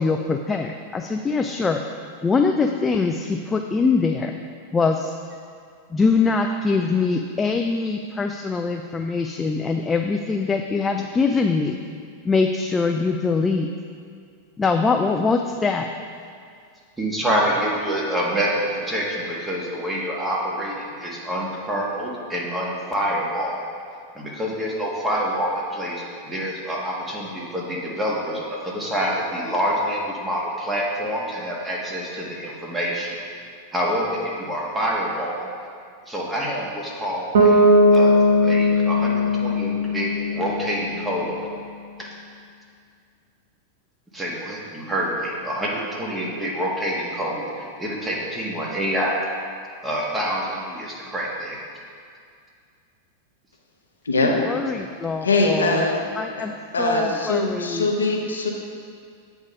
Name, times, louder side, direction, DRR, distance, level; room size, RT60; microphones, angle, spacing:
voice 1, 0.0-1.8 2.2-4.3 4.7-5.1 5.9-11.8 12.2-13.7 14.6-15.9 54.2-55.9 56.2-57.9, left 4 dB, 20° left, 4 dB, 0.3 m, -23 dB
voice 2, 17.0-18.5 18.8-23.6 24.1-33.2 33.7-35.5 36.0-38.1 38.4-41.3 42.0-42.1 44.1-49.2 49.8-51.6, equal, 10° right, -4 dB, 1.6 m, -27 dB
Bass guitar, 37.3-41.2, left 1 dB, 75° right, 1.1 m, -18 dB
voice 3, 54.1-54.4 55.2-56.0 56.4-56.5 56.7-58.5, left 2 dB, 90° left, 0 dB, 0.8 m, -22 dB
8.0 x 3.6 x 5.4 m, 2.2 s
hypercardioid pair, 100°, 0 cm